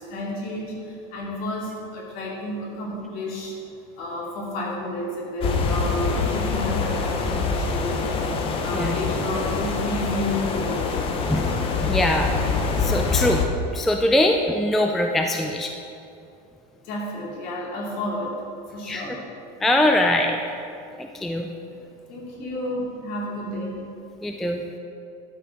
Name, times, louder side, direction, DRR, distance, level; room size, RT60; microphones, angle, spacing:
voice 1, 0.0-3.6 4.0-8.2 8.6-11.0 16.8-18.4 18.7-19.2 22.1-23.8, left 1 dB, 55° left, -3 dB, 2.7 m, -31 dB
sound 1, 5.4-13.5, left 4 dB, 30° left, 0.8 m, -25 dB
voice 2, 11.3-12.3 12.8-13.4 13.7-15.7 18.8-19.2 19.6-20.4 21.0-21.5 24.2-24.6, left 1 dB, ahead, 3 dB, 0.3 m, -22 dB
12.0 x 5.9 x 6.0 m, 2.6 s
cardioid pair, 170°, 18 cm